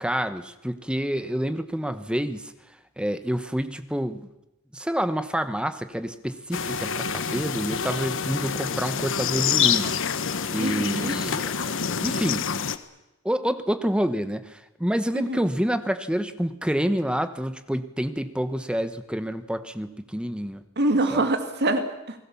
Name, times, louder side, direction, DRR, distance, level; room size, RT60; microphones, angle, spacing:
voice 1, 0.0-2.5 3.0-4.2 4.7-12.5 13.2-20.6 21.1-21.2, equal, 5° right, 10 dB, 1.1 m, -28 dB
sound 1, 6.5-12.8, left 7 dB, 60° left, 1.3 m, -27 dB
voice 2, 10.6-11.2 15.1-15.5 20.8-22.2, right 2 dB, 50° right, 7 dB, 2.3 m, -25 dB
29.0 x 20.0 x 7.2 m, 0.94 s
head